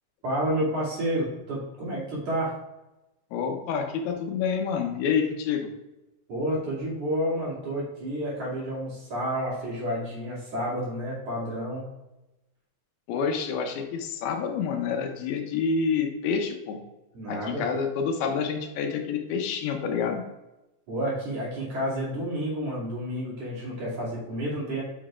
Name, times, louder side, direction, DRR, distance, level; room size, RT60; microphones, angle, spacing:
voice 1, 0.2-2.5 6.3-11.9 17.1-17.6 20.9-24.8, equal, 45° right, -7 dB, 3.2 m, -30 dB
voice 2, 3.3-5.7 13.1-16.8 17.3-20.2, left 6 dB, 80° left, 3 dB, 2.8 m, -28 dB
8.5 x 5.8 x 2.5 m, 0.99 s
omnidirectional pair, 4.5 m